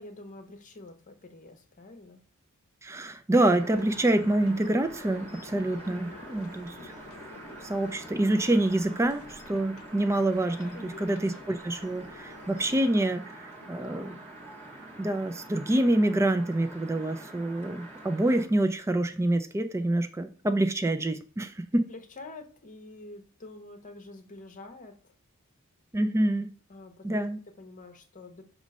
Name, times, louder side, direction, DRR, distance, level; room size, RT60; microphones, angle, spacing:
voice 1, 0.0-2.2 10.7-11.1 13.6-14.3 21.9-25.1 26.7-27.2 27.6-28.4, left 2 dB, 35° left, 1.0 m, -47 dB
voice 2, 2.8-6.9 7.6-14.2 15.0-21.8 25.9-26.5 27.0-27.4, right 1 dB, 15° right, 0.4 m, -27 dB
sound 1, 3.3-18.5, right 2 dB, 30° right, 1.8 m, -46 dB
sound 2, 3.5-12.8, left 3 dB, 65° left, 0.7 m, -49 dB
6.2 x 3.1 x 5.2 m
head